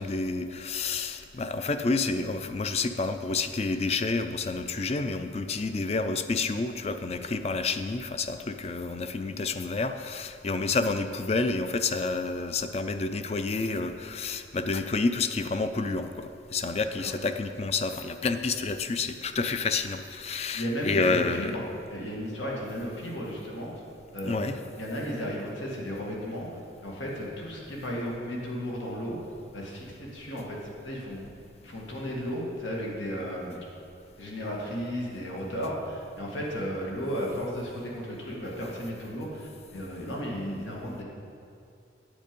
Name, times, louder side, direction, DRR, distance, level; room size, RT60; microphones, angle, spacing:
voice 1, 0.0-21.6 24.2-24.6, left 3 dB, 35° left, 9 dB, 0.4 m, -29 dB
voice 2, 20.5-21.6 21.9-23.7 24.1-24.5 24.8-26.5 26.8-29.2 29.5-31.3 31.6-33.6 34.2-41.0, equal, 90° left, -3 dB, 1.9 m, -34 dB
9.0 x 8.4 x 5.3 m, 2.5 s
head